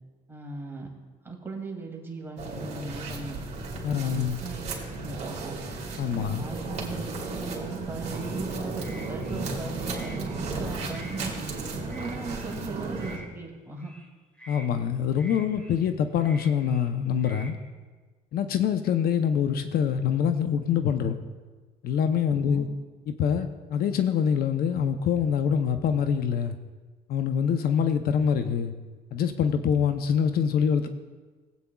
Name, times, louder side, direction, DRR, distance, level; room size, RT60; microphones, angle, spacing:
voice 1, 0.3-0.9 1.2-3.4 3.9-4.6 4.9-5.6 6.2-11.3 11.8-14.0 22.3-22.7, right 3 dB, 15° right, 0 dB, 2.3 m, -38 dB
sound 1, 2.4-13.2, right 3 dB, 40° right, 2.7 m, -34 dB
voice 2, 3.8-4.4 6.0-6.4 14.5-17.6 18.3-21.2 21.8-22.7 23.1-26.6 27.1-28.7 29.1-30.9, left 7 dB, 65° left, 8 dB, 0.7 m, -25 dB
sound 2, 8.1-8.4 8.8-9.5 9.9-10.6 10.9-11.2 11.8-12.5 12.9-13.3 13.8-14.1 14.4-14.7 15.2-15.8 16.2-16.9 17.2-17.5, right 1 dB, 5° left, 1.7 m, -48 dB
19.0 x 8.4 x 2.3 m, 1.3 s
cardioid pair, 110°, 17 cm